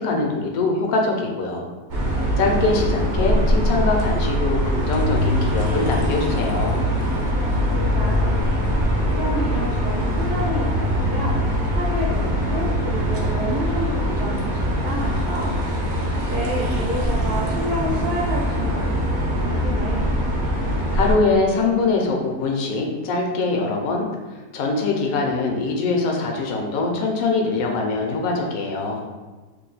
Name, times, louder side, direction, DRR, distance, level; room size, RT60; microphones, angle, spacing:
voice 1, 0.0-1.7 2.4-6.8 20.6-24.1 24.5-29.0, left 3 dB, 70° left, 1 dB, 1.0 m, -23 dB
sound 1, 1.9-21.1, equal, 80° right, 0.4 m, -22 dB
voice 2, 7.2-8.7 9.1-11.3 11.7-15.5 16.0-20.1, equal, 60° right, -5 dB, 0.8 m, -30 dB
2.8 x 2.2 x 3.9 m, 1.3 s
omnidirectional pair, 1.7 m